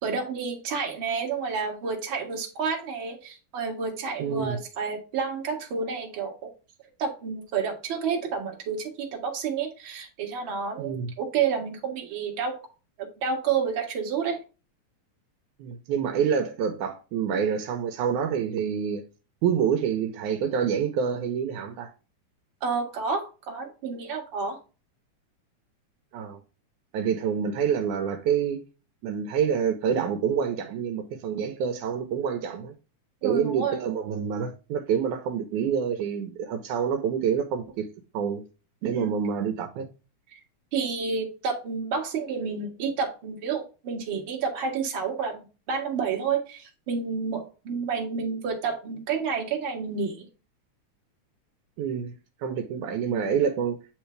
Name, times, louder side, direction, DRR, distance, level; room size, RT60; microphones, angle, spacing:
voice 1, 0.0-6.5 7.0-12.6 13.0-14.4 22.6-24.6 33.2-33.8 38.8-39.1 40.7-45.4 45.7-50.2, right 5 dB, 45° right, 2.1 m, -30 dB
voice 2, 4.2-4.6 10.8-11.1 15.6-19.0 19.4-21.9 26.1-26.4 26.9-28.6 29.0-32.7 33.2-37.8 38.1-38.4 38.8-39.9 51.8-52.1 52.4-53.8, right 7 dB, 80° right, 2.2 m, -27 dB
9.5 x 3.2 x 3.2 m
omnidirectional pair, 3.5 m